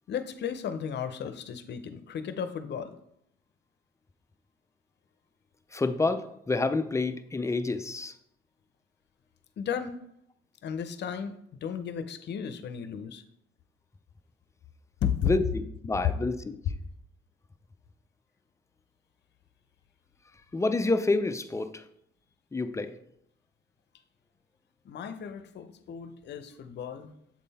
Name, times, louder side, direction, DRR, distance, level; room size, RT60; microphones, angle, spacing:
voice 1, 0.1-2.9 9.6-10.0 10.6-13.2 15.0-15.3 24.8-27.2, left 8 dB, 60° left, 10 dB, 0.6 m, -34 dB
voice 2, 5.7-8.1 15.2-16.5 20.5-21.8 22.5-23.0, left 3 dB, 15° left, 9 dB, 0.4 m, -28 dB
7.5 x 3.7 x 4.1 m, 0.75 s
cardioid pair, 90°, 20 cm